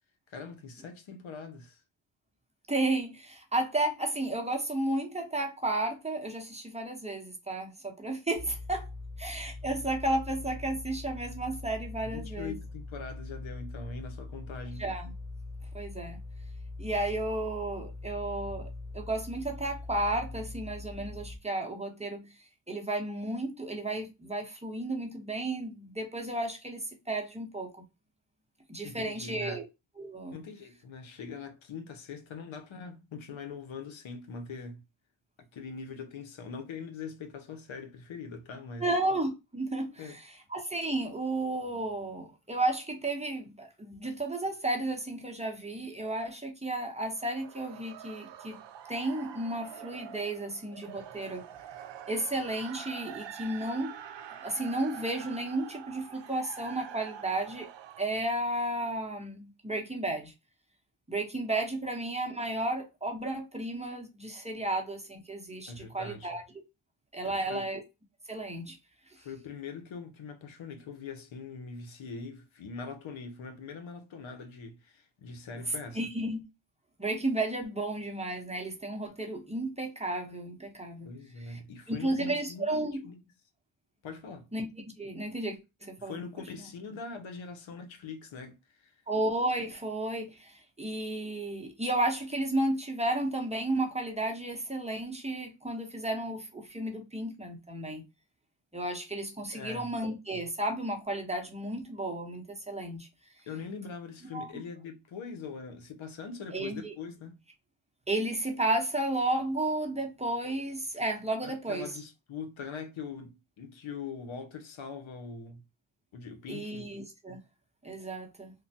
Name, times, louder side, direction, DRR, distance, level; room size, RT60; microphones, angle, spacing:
voice 1, 0.3-1.8 12.0-14.9 28.8-29.6 30.3-34.8 35.4-38.9 40.0-40.2 65.7-66.4 67.2-67.7 69.2-76.0 81.1-83.2 84.0-84.5 86.0-89.0 99.5-99.9 103.5-107.4 111.4-115.6 116.1-116.9, left 5 dB, 70° left, 0.7 m, -42 dB
voice 2, 2.7-8.9 9.2-12.6 14.8-15.1 15.7-16.2 16.8-22.3 22.7-27.8 28.7-29.6 30.0-30.4 38.8-40.1 40.5-48.6 48.9-51.5 52.1-54.0 54.4-57.7 58.0-60.3 61.1-66.4 67.1-67.8 68.3-68.8 75.9-76.4 77.0-81.1 81.5-81.6 81.9-83.1 84.5-84.7 85.0-86.2 89.1-98.0 98.7-103.1 104.3-104.5 106.5-106.9 108.1-111.9 116.5-117.4 117.8-118.5, right 2 dB, 15° right, 0.8 m, -33 dB
sound 1, 8.3-21.4, left 2 dB, 50° left, 0.9 m, -42 dB
sound 2, 47.0-58.1, right 9 dB, 60° right, 0.5 m, -46 dB
3.2 x 2.1 x 2.7 m
cardioid pair, 70°, 48 cm